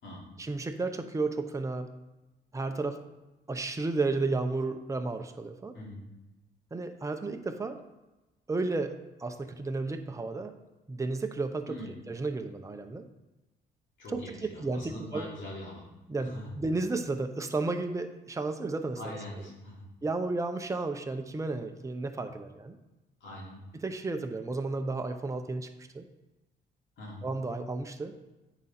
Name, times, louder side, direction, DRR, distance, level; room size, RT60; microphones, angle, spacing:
voice 1, 0.4-1.9 2.5-3.0 3.5-5.8 6.7-7.8 8.5-10.5 10.9-11.8 12.1-13.1 14.1-15.2 16.1-19.0 20.0-22.8 23.7-26.1 27.2-28.2, right 3 dB, 15° right, 6 dB, 0.7 m, -33 dB
voice 2, 14.0-15.9 16.2-16.5 19.0-19.9 23.2-23.6 27.0-27.2, left 1 dB, 65° left, -3 dB, 3.1 m, -43 dB
9.3 x 5.0 x 4.3 m, 1.0 s
cardioid pair, 90°, 20 cm